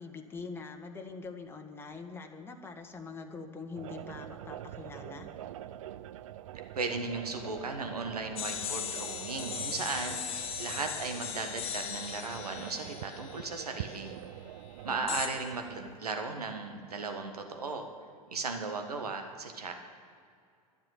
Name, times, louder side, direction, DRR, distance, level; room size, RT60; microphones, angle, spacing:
voice 1, 0.0-5.3 14.8-15.1, left 4 dB, 10° left, 3 dB, 1.5 m, -44 dB
sound 1, 3.8-16.0, right 12 dB, 60° right, 0.5 m, -45 dB
voice 2, 6.7-14.2 14.8-17.9 18.3-19.7, right 4 dB, 80° right, 5 dB, 1.5 m, -36 dB
sound 2, 8.4-14.1 15.1-15.3, left 8 dB, 30° left, 1.7 m, -38 dB
11.5 x 7.5 x 9.8 m, 2.3 s
figure-of-eight pair, 90°, 19 cm